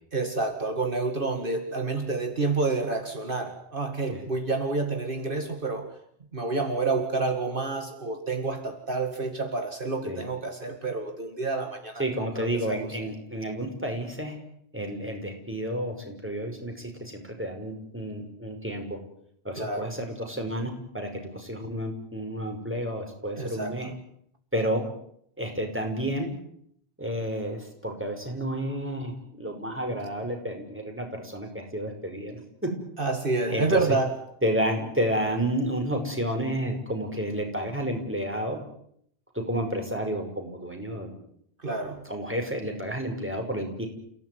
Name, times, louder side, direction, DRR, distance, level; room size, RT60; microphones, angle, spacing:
voice 1, 0.1-6.0 6.3-12.9 19.6-20.0 23.4-24.0 33.0-34.2 41.6-42.1, right 3 dB, 55° right, 5 dB, 2.3 m, -29 dB
voice 2, 12.0-14.4 14.7-19.0 19.4-23.9 24.5-24.8 25.4-26.3 27.0-32.7 33.5-33.8 34.4-38.6 39.3-41.1 42.1-43.9, equal, 10° right, 2 dB, 5.7 m, -31 dB
29.5 x 17.0 x 9.6 m, 0.70 s
omnidirectional pair, 1.1 m